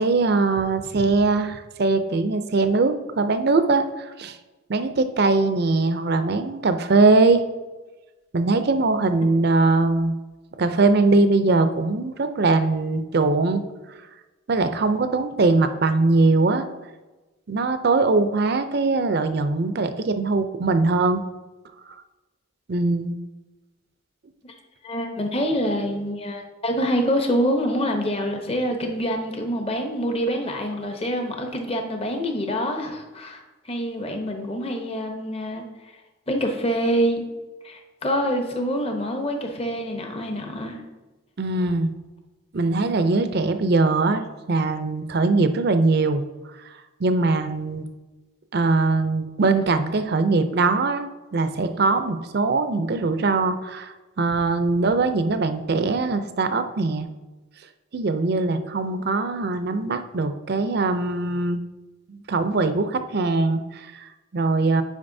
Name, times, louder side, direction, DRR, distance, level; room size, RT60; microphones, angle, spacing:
voice 1, 0.0-4.4 4.7-7.4 8.3-10.1 10.6-13.6 14.5-16.7 17.5-21.2 22.7-23.2 41.4-41.9 42.5-46.2 46.6-47.9 48.5-57.1 57.9-61.6 62.1-64.8, right 3 dB, 50° right, 9 dB, 0.5 m, -21 dB
voice 2, 24.8-35.9 36.3-37.2 37.6-40.8, equal, 30° left, 3 dB, 0.8 m, -26 dB
8.6 x 5.1 x 2.7 m, 1.1 s
head